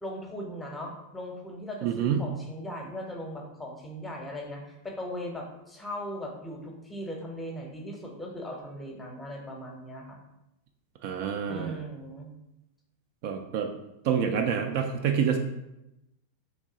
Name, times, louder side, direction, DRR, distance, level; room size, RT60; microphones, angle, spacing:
voice 1, 0.0-10.2 11.5-12.3, equal, 10° left, 1 dB, 0.7 m, -38 dB
voice 2, 1.8-2.2 11.0-11.7 13.2-13.7 14.0-15.4, right 8 dB, 45° right, 4 dB, 0.3 m, -27 dB
3.1 x 2.6 x 3.7 m, 0.89 s
figure-of-eight pair, 90°, 0 cm